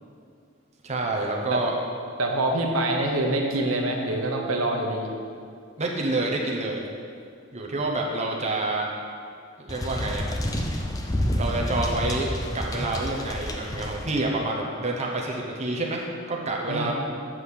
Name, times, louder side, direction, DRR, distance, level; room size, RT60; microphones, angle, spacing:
voice 1, 0.8-1.7 5.8-6.8 7.5-8.9 9.6-10.2 11.3-12.3 12.5-16.9, right 2 dB, 30° right, -1 dB, 0.9 m, -28 dB
voice 2, 2.2-5.1 16.7-16.9, right 1 dB, 90° right, 1 dB, 1.0 m, -25 dB
sound 1, 9.7-14.2, left 1 dB, 15° left, 0.6 m, -29 dB
7.6 x 5.5 x 6.5 m, 2.3 s
head